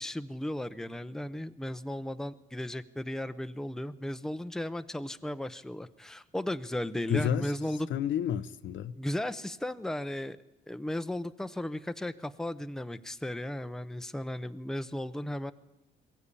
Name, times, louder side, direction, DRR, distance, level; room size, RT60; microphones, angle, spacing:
voice 1, 0.0-7.9 9.0-10.4 10.7-15.5, left 1 dB, ahead, 0.7 m, -35 dB
voice 2, 7.1-7.5 7.9-9.0, left 9 dB, 70° left, 0.8 m, -30 dB
22.0 x 15.0 x 8.4 m
cardioid pair, 90°, 20 cm